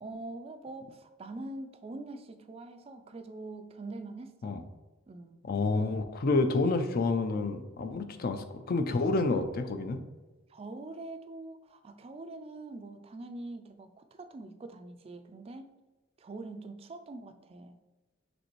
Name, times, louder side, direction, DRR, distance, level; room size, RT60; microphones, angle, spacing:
voice 1, 0.0-4.5 5.1-5.4 10.5-15.7 16.2-17.8, right 2 dB, 30° right, 8 dB, 0.3 m, -44 dB
voice 2, 5.5-10.0, left 3 dB, 50° left, 8 dB, 0.4 m, -29 dB
5.2 x 3.3 x 3.0 m, 1.2 s
head